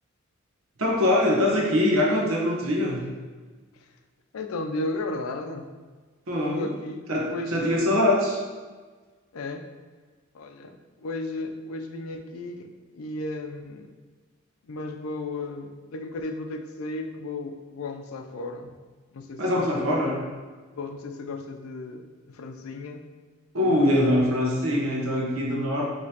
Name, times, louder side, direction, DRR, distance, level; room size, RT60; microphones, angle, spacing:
voice 1, 0.8-3.1 6.3-6.7 7.1-8.4 19.4-20.2 23.5-25.9, left 1 dB, 80° right, -2 dB, 1.0 m, -23 dB
voice 2, 4.3-5.7 6.5-7.9 9.3-9.7 10.3-13.9 14.6-18.8 19.1-20.2 20.7-23.1 23.7-24.0, left 2 dB, 90° left, 5 dB, 0.4 m, -35 dB
5.0 x 2.9 x 2.8 m, 1.4 s
head